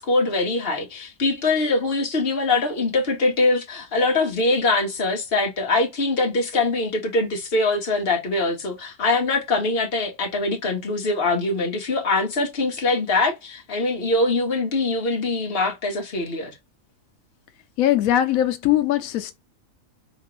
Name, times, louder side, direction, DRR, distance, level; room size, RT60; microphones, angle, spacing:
voice 1, 0.0-16.5, left 2 dB, 45° left, 1.4 m, -23 dB
voice 2, 17.8-19.4, left 12 dB, 90° left, 1.0 m, -20 dB
4.2 x 3.6 x 3.0 m
omnidirectional pair, 1.4 m